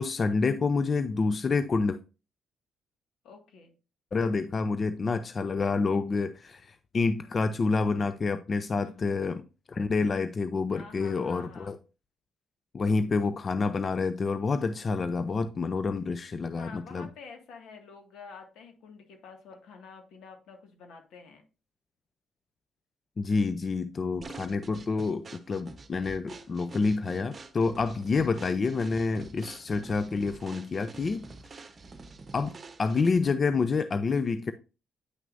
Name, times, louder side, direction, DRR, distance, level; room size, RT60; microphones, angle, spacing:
voice 1, 0.0-2.0 4.1-9.4 9.7-11.8 12.7-17.1 23.2-31.3 32.3-34.5, left 4 dB, 40° left, 0.5 m, -28 dB
voice 2, 3.2-3.7 8.7-9.0 10.7-11.8 16.6-21.4 29.3-29.6, left 5 dB, 80° left, 1.9 m, -48 dB
sound 1, 24.2-33.4, right 3 dB, 35° right, 1.0 m, -47 dB
9.4 x 6.1 x 2.6 m
cardioid pair, 90°, 0 cm